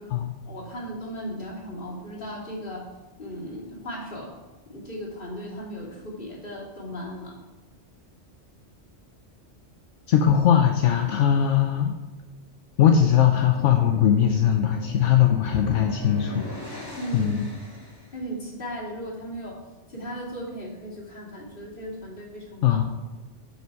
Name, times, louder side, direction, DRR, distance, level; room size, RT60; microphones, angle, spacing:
voice 1, 0.5-2.9 3.2-4.3 4.7-7.4 17.0-17.4 18.1-19.6 19.9-22.8, equal, 45° left, -5 dB, 2.8 m, -36 dB
voice 2, 10.1-11.9 12.8-16.3 17.1-17.4 22.6-22.8, left 9 dB, 80° left, 4 dB, 1.0 m, -20 dB
sound 1, 12.8-18.2, left 2 dB, 20° left, 2.5 m, -38 dB
12.0 x 5.6 x 4.7 m, 1.2 s
omnidirectional pair, 1.3 m